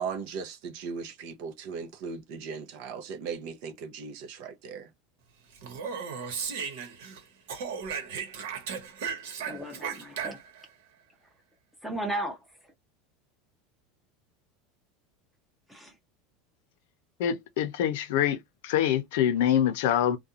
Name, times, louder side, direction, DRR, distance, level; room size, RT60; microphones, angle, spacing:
voice 1, 0.0-4.9, right 5 dB, 50° right, 0.6 m, -37 dB
Speech, 5.5-7.2 7.5-10.6, right 6 dB, 75° right, 1.2 m, -36 dB
voice 2, 9.4-10.4 11.8-12.7 15.7-16.0, right 1 dB, 5° right, 0.7 m, -35 dB
voice 3, 17.2-18.4 18.6-20.2, left 10 dB, 65° left, 0.6 m, -25 dB
2.4 x 2.3 x 2.8 m
supercardioid pair, 180°, 0 cm